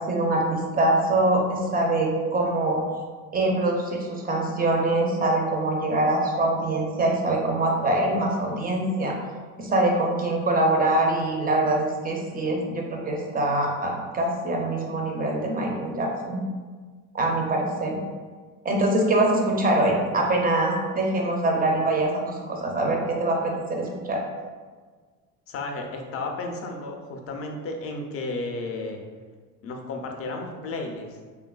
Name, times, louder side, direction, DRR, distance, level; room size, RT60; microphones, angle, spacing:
voice 1, 0.0-2.8 3.3-9.1 9.6-16.4 17.1-18.0 18.6-24.2, right 2 dB, 20° right, 0 dB, 0.5 m, -24 dB
voice 2, 25.5-29.0 29.6-31.2, left 2 dB, 35° left, 3 dB, 0.4 m, -33 dB
3.0 x 2.2 x 2.3 m, 1.5 s
supercardioid pair, 85°, 44 cm